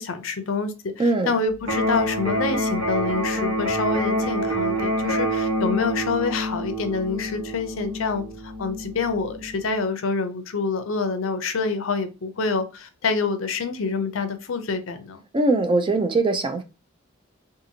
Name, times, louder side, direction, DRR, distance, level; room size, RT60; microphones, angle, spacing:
voice 1, 0.0-15.2, left 4 dB, 80° left, 0.5 m, -27 dB
voice 2, 1.0-1.3 15.3-16.6, right 2 dB, 25° right, 0.4 m, -21 dB
Electric guitar, 1.6-9.6, equal, 85° right, 1.2 m, -27 dB
2.7 x 2.5 x 2.7 m
head